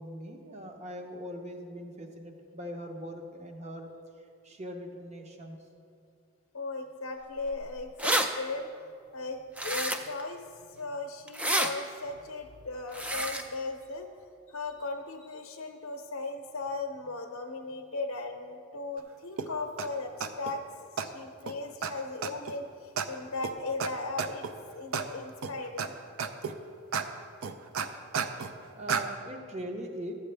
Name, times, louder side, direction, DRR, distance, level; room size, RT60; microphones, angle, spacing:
voice 1, 0.0-3.9 4.4-5.6 28.7-30.1, equal, 30° right, 4 dB, 0.8 m, -41 dB
voice 2, 6.5-14.1 14.5-20.6 20.9-24.5 24.7-25.9, left 3 dB, 70° left, 3 dB, 0.6 m, -37 dB
sound 1, 7.5-7.6 7.8-8.3 9.6-10.2 11.3-11.7 12.9-13.4, right 1 dB, 5° right, 0.3 m, -28 dB
sound 2, 19.4-19.5 19.8-19.9 20.2-20.5 21.0-21.1 21.5-21.6 21.8-21.9 22.2-22.5 23.0-23.1 23.4-23.5 23.8-23.9 24.2-24.5 24.9-25.1 25.4-25.9 26.2-26.5 26.9-27.1 27.4-28.5 28.9-29.0, right 6 dB, 75° right, 0.5 m, -31 dB
13.0 x 8.1 x 3.3 m, 2.4 s
head